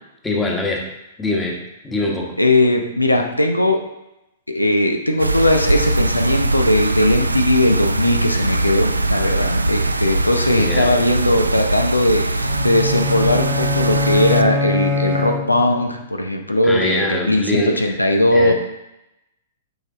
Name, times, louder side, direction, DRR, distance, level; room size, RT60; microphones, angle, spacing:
voice 1, 0.2-0.9 1.2-1.6 1.8-2.3 10.6-10.9 16.6-18.0 18.3-18.5, left 2 dB, 10° left, -1 dB, 1.5 m, -23 dB
voice 2, 2.4-3.8 4.5-18.5, left 1 dB, 85° left, 4 dB, 0.9 m, -18 dB
sound 1, 5.2-14.4, right 2 dB, 80° right, 0.4 m, -21 dB
sound 2, 12.4-15.9, left 3 dB, 15° right, 1.0 m, -23 dB
9.0 x 5.2 x 3.9 m, 0.91 s
figure-of-eight pair, 110°, 0 cm